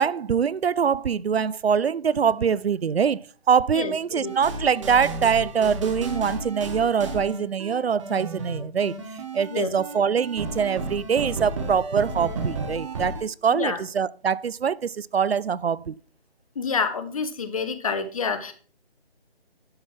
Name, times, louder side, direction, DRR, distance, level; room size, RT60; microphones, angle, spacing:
voice 1, 0.0-3.2 3.5-9.0 9.3-15.9, right 7 dB, 75° right, 0.6 m, -23 dB
voice 2, 3.7-4.3 9.5-9.8 13.5-13.8 16.5-18.5, left 5 dB, 35° left, 1.1 m, -28 dB
sound 1, 4.2-13.2, right 2 dB, 30° right, 1.6 m, -33 dB
11.5 x 5.6 x 4.5 m
figure-of-eight pair, 160°, 31 cm